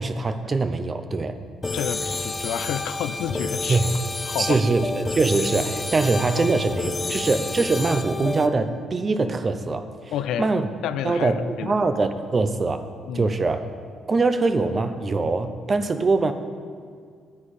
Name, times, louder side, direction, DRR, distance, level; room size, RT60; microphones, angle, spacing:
voice 1, 0.0-1.4 3.6-3.9 4.4-9.8 10.4-10.7 11.0-12.9 13.1-13.7 14.1-16.3, right 3 dB, 30° right, 9 dB, 0.7 m, -23 dB
sound 1, 1.6-8.5, left 3 dB, 20° left, 0.6 m, -29 dB
voice 2, 1.7-3.8 4.3-4.6 7.0-7.1 10.1-10.5 10.8-11.7 13.1-13.3, left 10 dB, 85° left, 12 dB, 0.4 m, -29 dB
12.5 x 9.6 x 4.2 m, 2.1 s
cardioid pair, 120°, 0 cm